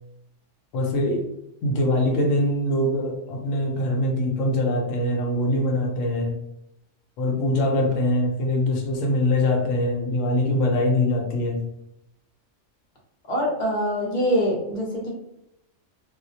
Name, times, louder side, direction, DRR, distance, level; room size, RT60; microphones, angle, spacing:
voice 1, 0.7-1.4 1.6-6.4 7.2-11.7, left 1 dB, 85° left, 1 dB, 1.0 m, -23 dB
voice 2, 13.3-15.1, equal, 45° left, -2 dB, 0.8 m, -24 dB
2.3 x 2.1 x 2.6 m, 0.82 s
omnidirectional pair, 1.3 m